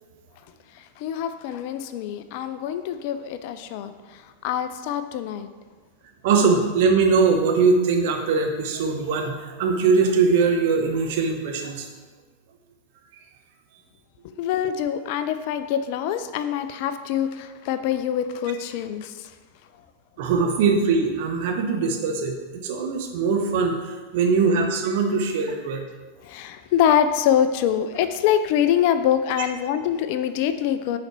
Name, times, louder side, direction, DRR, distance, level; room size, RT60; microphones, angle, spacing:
voice 1, 0.7-5.5 14.4-19.3 26.2-31.0, left 9 dB, 45° left, 10 dB, 0.4 m, -24 dB
voice 2, 6.2-11.9 20.2-25.9, right 4 dB, 50° right, 3 dB, 0.8 m, -21 dB
6.4 x 4.2 x 4.6 m, 1.4 s
figure-of-eight pair, 90°, 0 cm